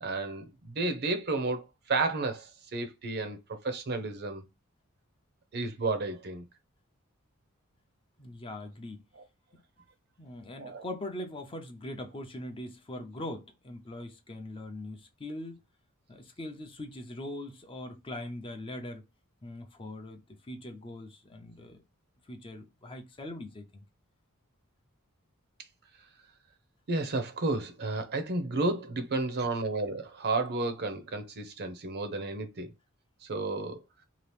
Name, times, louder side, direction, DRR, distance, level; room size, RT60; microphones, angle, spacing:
voice 1, 0.0-3.4 3.6-4.4 5.5-6.4 9.2-9.3 10.6-10.8 26.9-32.7 33.2-33.8, right 3 dB, 50° right, 0.7 m, -32 dB
voice 2, 8.2-9.0 10.2-15.6 16.1-19.0 19.4-20.2 20.5-21.8 22.3-23.8, left 1 dB, 25° left, 0.5 m, -41 dB
2.9 x 2.4 x 3.2 m
head